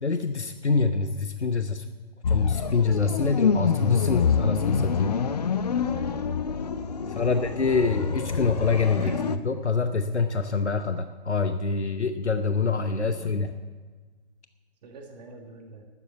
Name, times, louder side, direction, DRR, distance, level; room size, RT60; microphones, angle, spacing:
voice 1, 0.0-1.9 2.3-5.2 7.1-9.1 9.4-13.5, left 4 dB, 90° left, 10 dB, 0.7 m, -26 dB
sound 1, 2.2-9.4, left 6 dB, 40° left, 0.5 m, -26 dB
voice 2, 6.9-7.3 8.9-9.2 13.1-13.3 14.8-15.8, right 2 dB, 40° right, 3 dB, 1.7 m, -43 dB
12.5 x 6.9 x 8.3 m, 1.4 s
figure-of-eight pair, 130°, 33 cm